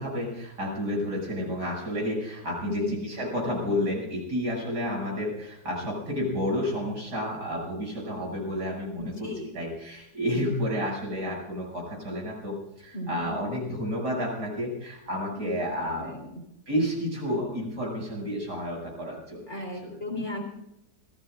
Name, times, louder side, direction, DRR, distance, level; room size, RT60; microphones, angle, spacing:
voice 1, 0.0-16.1 16.7-19.5 19.8-20.0, left 1 dB, 70° right, -2 dB, 7.9 m, -31 dB
voice 2, 2.6-3.0 9.0-9.5 12.9-13.5 15.3-16.2 19.5-20.4, left 1 dB, 40° left, 2 dB, 3.9 m, -36 dB
26.5 x 16.5 x 2.6 m, 0.79 s
omnidirectional pair, 1.8 m